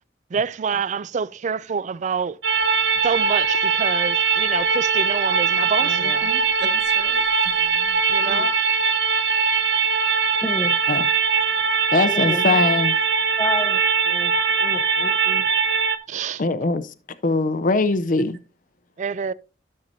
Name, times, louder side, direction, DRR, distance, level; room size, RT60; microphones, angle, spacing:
voice 1, 0.3-2.4 3.0-6.3 8.1-8.5 16.1-16.4 19.0-19.3, right 6 dB, 45° right, 0.3 m, -27 dB
sound 1, 2.4-16.0, right 5 dB, 90° right, 0.9 m, -21 dB
voice 2, 5.8-7.7 8.2-8.5, right 1 dB, 70° right, 1.4 m, -38 dB
voice 3, 10.4-10.7 12.1-12.4 13.4-14.3 14.6-15.4, equal, 15° left, 0.8 m, -30 dB
voice 4, 11.9-12.9 16.4-16.9 17.2-18.4, left 3 dB, 50° left, 0.6 m, -21 dB
13.0 x 6.7 x 2.7 m
head